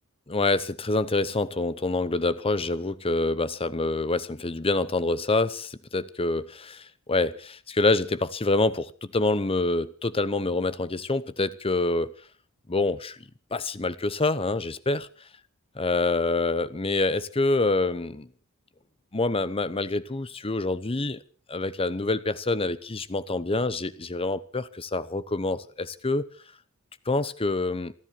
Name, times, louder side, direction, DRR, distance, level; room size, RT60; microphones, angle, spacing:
voice 1, 0.3-12.1 12.7-13.2 13.5-15.1 15.8-18.3 19.1-21.2 21.5-26.2 27.1-27.9, left 2 dB, 25° left, 16 dB, 0.8 m, -26 dB
28.0 x 10.5 x 4.5 m, 0.42 s
head